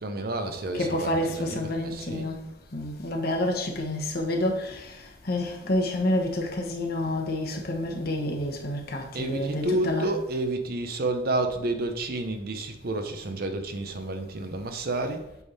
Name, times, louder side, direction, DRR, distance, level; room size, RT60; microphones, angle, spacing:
voice 1, 0.0-2.3 9.1-15.3, right 2 dB, 55° right, 0.8 m, -30 dB
voice 2, 0.8-2.4 2.7-10.1, left 1 dB, 55° left, 1.2 m, -28 dB
8.2 x 3.6 x 4.2 m
head